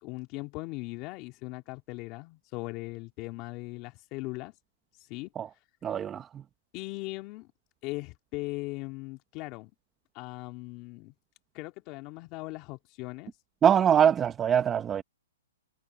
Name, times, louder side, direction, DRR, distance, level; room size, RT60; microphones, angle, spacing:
voice 1, 0.0-4.5 5.1-5.3 6.7-7.5 7.8-9.7 10.1-11.1 11.5-13.3, left 22 dB, 30° left, 2.5 m, -39 dB
voice 2, 5.8-6.2 13.6-15.0, right 8 dB, 15° right, 0.9 m, -23 dB
hypercardioid pair, 150°, 0 cm